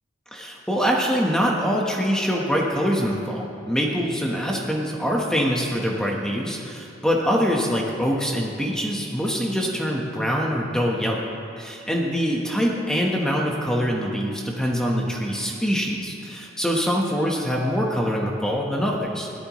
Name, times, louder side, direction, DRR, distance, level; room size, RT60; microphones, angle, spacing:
voice 1, 0.3-19.3, equal, 5° left, -2 dB, 1.2 m, -24 dB
21.5 x 14.5 x 3.1 m, 2.5 s
head